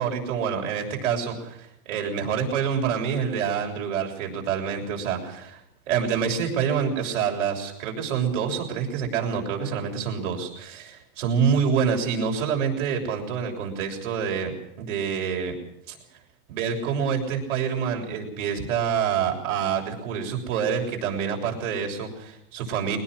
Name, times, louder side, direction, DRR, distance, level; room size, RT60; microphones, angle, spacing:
voice 1, 0.0-5.6 5.9-14.5 14.8-15.6 15.9-16.0 16.5-23.0, right 7 dB, 55° right, 1 dB, 7.2 m, -27 dB
22.5 x 19.5 x 6.4 m, 0.80 s
supercardioid pair, 160°, 44 cm